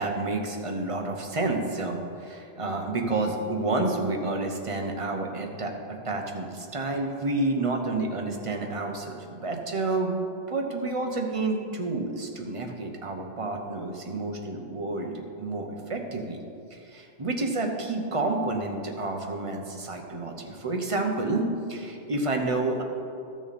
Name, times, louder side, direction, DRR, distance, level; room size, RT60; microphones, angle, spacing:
voice 1, 0.0-16.4 16.7-22.8, right 2 dB, 30° right, 3 dB, 0.9 m, -29 dB
12.5 x 6.2 x 4.2 m, 2.5 s
omnidirectional pair, 1.2 m